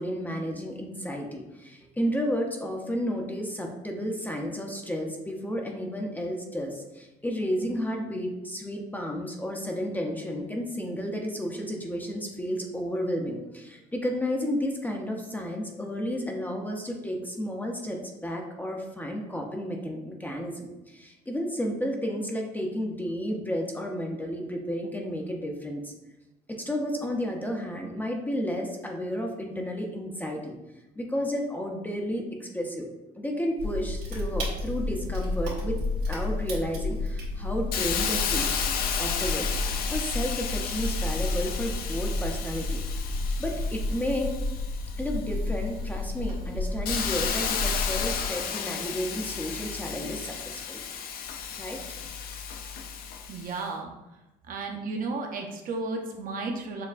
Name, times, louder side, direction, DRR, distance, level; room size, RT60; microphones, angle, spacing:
voice 1, 0.0-25.9 26.5-30.5 31.0-32.9 33.2-35.8 36.1-38.5 39.0-39.5 39.9-42.8 43.4-44.3 45.0-50.8 51.5-52.0, equal, 10° left, 1 dB, 0.5 m, -32 dB
sound 1, 33.6-48.3, left 2 dB, 80° right, 1.5 m, -31 dB
Hiss, 37.7-45.3 45.8-53.5, left 7 dB, 65° left, 0.5 m, -33 dB
voice 2, 53.3-53.9 54.5-56.9, right 3 dB, 55° right, 2 dB, 0.7 m, -33 dB
6.5 x 2.2 x 2.4 m, 1.0 s
cardioid pair, 110°, 17 cm